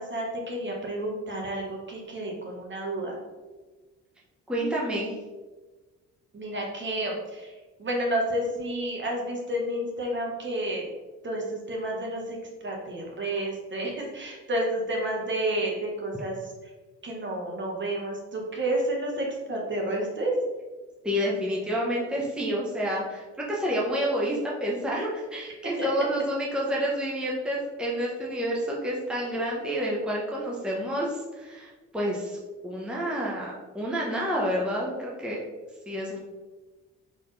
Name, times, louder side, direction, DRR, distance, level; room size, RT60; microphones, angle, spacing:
voice 1, 0.0-3.2 6.3-10.9 11.2-16.5 17.0-20.3 25.8-25.9, right 1 dB, 40° right, -1 dB, 1.3 m, -30 dB
voice 2, 4.5-5.1 21.0-32.4 32.6-35.4 35.9-36.2, equal, 5° right, -4 dB, 0.9 m, -29 dB
4.3 x 3.5 x 3.2 m, 1.2 s
cardioid pair, 90°, 30 cm